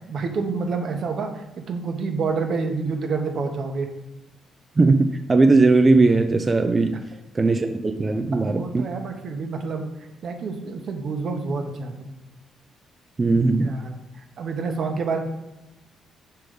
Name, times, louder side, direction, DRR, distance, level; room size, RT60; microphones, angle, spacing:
voice 1, 0.1-3.9 8.4-9.9 10.2-12.2 13.3-15.2, right 4 dB, 60° right, 4 dB, 1.0 m, -28 dB
voice 2, 4.8-7.0 7.3-8.9 13.2-13.7, right 3 dB, 30° right, 7 dB, 0.4 m, -18 dB
7.6 x 3.4 x 5.0 m, 0.97 s
cardioid pair, 90°, 0 cm